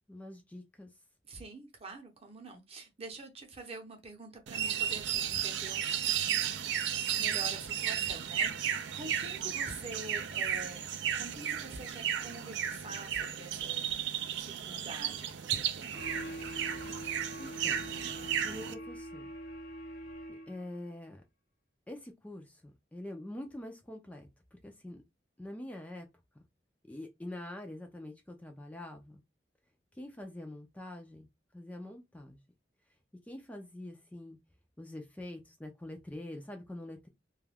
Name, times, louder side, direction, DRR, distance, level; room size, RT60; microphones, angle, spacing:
voice 1, 0.1-0.9 17.4-17.8 18.4-19.3 20.5-21.2 21.9-25.0 25.4-26.1 26.9-29.2 29.9-31.3 31.5-32.4 33.3-34.4 34.8-37.1, left 1 dB, 10° left, 0.3 m, -45 dB
voice 2, 1.3-10.8 11.1-16.0, right 3 dB, 35° right, 0.7 m, -45 dB
sound 1, 4.5-18.7, right 9 dB, 85° right, 0.4 m, -34 dB
sound 2, 15.9-20.8, equal, 55° left, 0.7 m, -44 dB
2.3 x 2.1 x 3.3 m
head